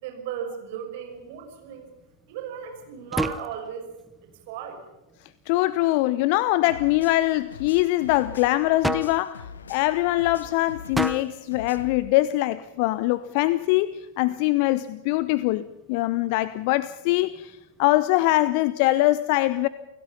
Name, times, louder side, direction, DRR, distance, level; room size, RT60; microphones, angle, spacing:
voice 1, 0.0-1.9 2.3-3.9 4.2-4.8, right 8 dB, 50° right, 5.8 m, -35 dB
sound 1, 1.1-18.0, right 1 dB, 5° right, 1.0 m, -38 dB
voice 2, 5.5-19.7, left 17 dB, 45° left, 0.7 m, -23 dB
sound 2, 6.7-12.0, left 6 dB, 70° left, 1.2 m, -43 dB
29.5 x 17.5 x 5.6 m
figure-of-eight pair, 90°, 0 cm